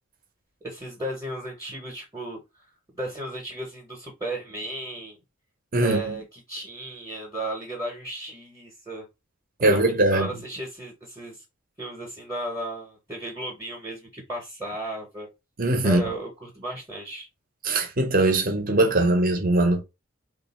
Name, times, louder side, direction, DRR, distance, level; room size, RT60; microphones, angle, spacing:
voice 1, 0.6-2.4 2.9-5.2 5.8-9.1 9.6-11.4 11.8-15.3 15.8-17.3, right 1 dB, 15° right, 0.9 m, -34 dB
voice 2, 5.7-6.2 9.6-10.3 15.6-16.0 17.6-19.8, right 2 dB, 40° right, 0.8 m, -21 dB
3.2 x 2.6 x 4.1 m
head